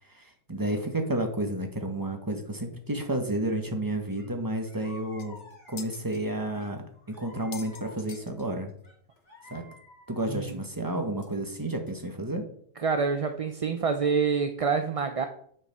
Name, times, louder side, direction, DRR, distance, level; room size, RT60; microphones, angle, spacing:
voice 1, 0.1-5.4 5.7-8.7 9.5-9.6 10.1-12.4, right 1 dB, 20° right, 5 dB, 1.3 m, -31 dB
sound 1, 4.2-4.3 4.6-6.0 6.6-8.3 8.8-10.6, left 2 dB, 85° left, 2.9 m, -51 dB
sound 2, 4.8-4.9 5.2-6.2 6.8-6.9 7.3-8.9 9.2-9.3 9.5-9.6 10.5-10.6 11.2-11.3 11.9-12.0, left 7 dB, 70° left, 1.2 m, -46 dB
voice 2, 10.3-10.6 12.8-15.3, right 5 dB, 40° right, 7 dB, 0.5 m, -27 dB
8.7 x 5.2 x 6.7 m, 0.63 s
omnidirectional pair, 1.2 m